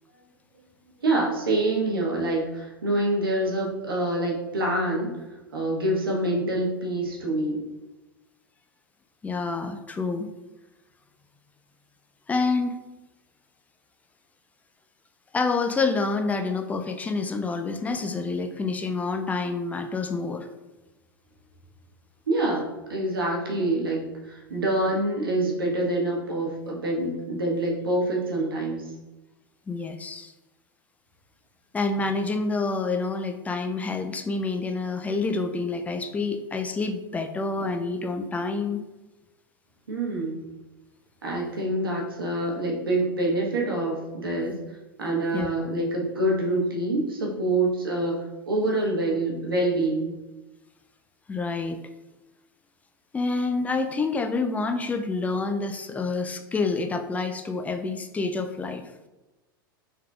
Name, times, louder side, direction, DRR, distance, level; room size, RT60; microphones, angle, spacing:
voice 1, 1.0-5.1 5.5-7.6 22.3-28.8 39.9-40.4 41.2-44.5 45.0-50.1, right 1 dB, 85° right, -2 dB, 0.9 m, -26 dB
voice 2, 9.2-10.3 12.3-12.8 15.3-20.5 29.7-30.3 31.7-38.9 45.3-45.5 51.3-51.8 53.1-58.8, left 3 dB, 15° left, 6 dB, 0.3 m, -28 dB
3.6 x 3.5 x 2.3 m, 1.1 s
hypercardioid pair, 95°, 12 cm